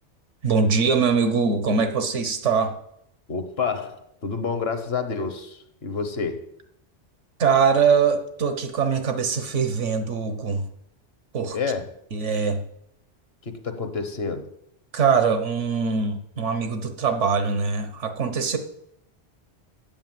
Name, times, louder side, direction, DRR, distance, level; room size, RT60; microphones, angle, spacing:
voice 1, 0.4-2.8 7.4-10.7 11.3-11.6 12.1-12.6 14.9-18.6, right 5 dB, 80° right, 1.5 m, -22 dB
voice 2, 3.3-6.4 11.5-11.9 13.4-14.5, left 5 dB, 60° left, 1.3 m, -29 dB
8.9 x 8.2 x 7.5 m
omnidirectional pair, 1.2 m